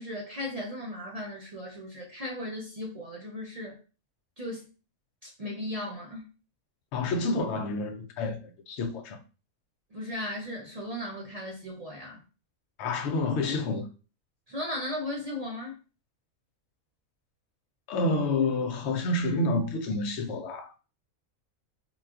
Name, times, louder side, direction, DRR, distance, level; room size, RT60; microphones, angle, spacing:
voice 1, 0.0-3.8 4.4-4.7 5.2-6.3 9.9-12.2 14.5-15.8, left 1 dB, 60° right, 0.4 m, -36 dB
voice 2, 6.9-9.2 12.8-13.9 17.9-20.8, left 2 dB, 65° left, 0.7 m, -29 dB
3.8 x 2.3 x 2.3 m
omnidirectional pair, 1.5 m